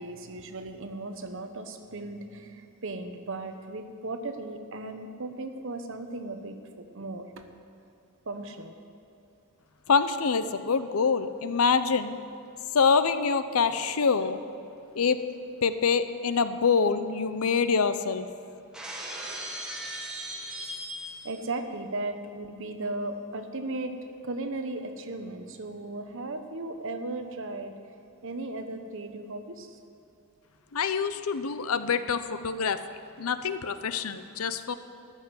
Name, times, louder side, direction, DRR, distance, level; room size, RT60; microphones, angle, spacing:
voice 1, 0.0-7.4 8.2-8.7 21.2-24.0 24.2-27.7 28.2-29.8, right 2 dB, 60° right, 7 dB, 1.0 m, -36 dB
voice 2, 9.9-12.2 12.7-14.4 15.0-15.2 15.6-18.2 30.7-32.8 33.2-34.8, left 5 dB, 70° left, 12 dB, 0.6 m, -25 dB
Shatter, 18.7-21.5, equal, 5° right, 1.4 m, -38 dB
13.5 x 6.5 x 9.5 m, 2.7 s
head